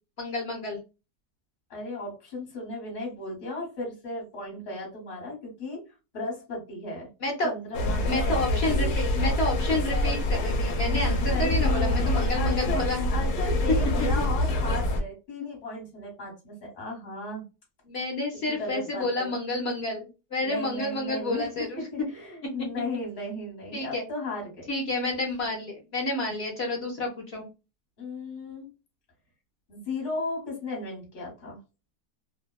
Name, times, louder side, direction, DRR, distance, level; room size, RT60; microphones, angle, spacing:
voice 1, 0.2-0.8 7.2-7.5 8.0-13.1 17.9-21.8 23.7-24.0 24.7-27.5, left 2 dB, 60° left, 0 dB, 0.6 m, -30 dB
voice 2, 1.7-5.8 6.1-7.1 7.4-8.2 8.5-8.9 11.2-12.0 12.3-12.8 13.1-17.4 18.5-19.3 20.4-24.7 28.0-28.7 29.7-31.6, left 2 dB, 40° left, 0 dB, 1.1 m, -35 dB
sound 1, 7.7-15.0, left 1 dB, 75° left, 1.1 m, -25 dB
2.7 x 2.1 x 2.2 m, 0.29 s
omnidirectional pair, 1.7 m